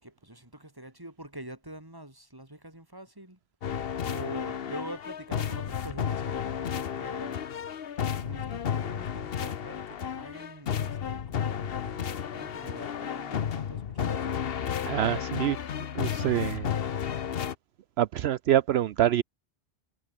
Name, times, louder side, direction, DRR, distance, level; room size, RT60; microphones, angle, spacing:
voice 1, 0.0-3.4 4.0-7.5 8.1-14.4, right 1 dB, 20° right, 3.8 m, -45 dB
sound 1, 3.6-17.6, left 8 dB, 60° left, 1.1 m, -32 dB
voice 2, 14.8-15.6 15.9-16.7 18.0-19.2, right 12 dB, 70° right, 0.9 m, -25 dB
omnidirectional pair, 1.1 m